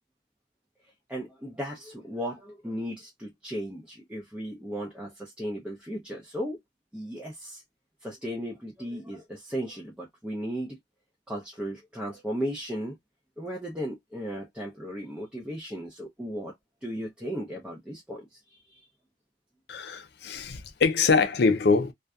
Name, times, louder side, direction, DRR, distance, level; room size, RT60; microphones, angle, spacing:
voice 1, 1.1-6.6 6.9-7.6 8.0-10.8 11.3-13.0 13.4-16.5 16.8-18.8, equal, 5° right, 0.5 m, -36 dB
voice 2, 19.7-21.9, left 4 dB, 55° left, 0.5 m, -24 dB
2.6 x 2.4 x 2.2 m
head